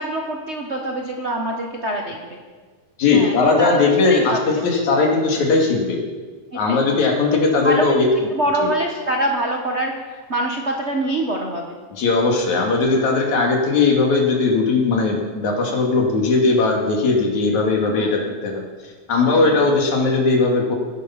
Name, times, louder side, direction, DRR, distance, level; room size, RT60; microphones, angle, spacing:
voice 1, 0.0-2.4 3.1-3.8 4.1-4.4 6.5-6.8 7.6-7.9 8.3-11.8 18.0-18.1 19.2-19.6, right 1 dB, 75° right, 1 dB, 0.6 m, -25 dB
voice 2, 3.0-6.0 6.5-8.1 8.6-8.7 11.9-20.7, left 3 dB, 75° left, 0 dB, 3.6 m, -18 dB
17.5 x 10.0 x 5.9 m, 1.4 s
omnidirectional pair, 3.4 m